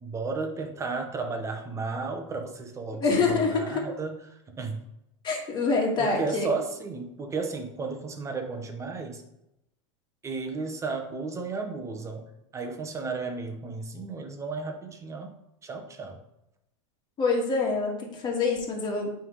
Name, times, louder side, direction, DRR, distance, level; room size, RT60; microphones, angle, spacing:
voice 1, 0.0-4.2 4.5-4.8 6.0-9.2 10.2-15.3 15.6-16.2, right 4 dB, 20° right, 4 dB, 1.0 m, -33 dB
voice 2, 3.0-3.8 5.2-6.5 17.2-19.1, left 4 dB, 25° left, 0 dB, 1.9 m, -26 dB
9.0 x 3.6 x 3.2 m, 0.85 s
supercardioid pair, 130°, 16 cm